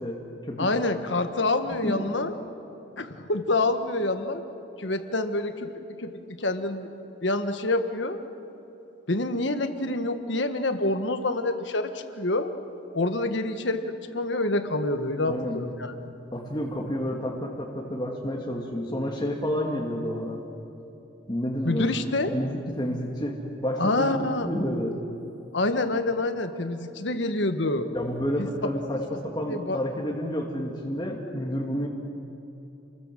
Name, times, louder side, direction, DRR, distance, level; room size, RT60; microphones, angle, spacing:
voice 1, 0.0-0.7 1.7-2.1 15.3-15.6 16.3-20.4 21.3-22.0 22.3-24.9 27.9-31.9, equal, 25° left, -1 dB, 2.0 m, -30 dB
voice 2, 0.6-2.3 3.0-4.4 4.8-6.9 7.2-8.2 9.1-12.5 12.9-15.9 21.6-22.3 23.8-24.5 25.5-27.9 29.5-29.8, left 2 dB, 70° left, 8 dB, 1.6 m, -27 dB
29.0 x 20.5 x 7.7 m, 3.0 s
head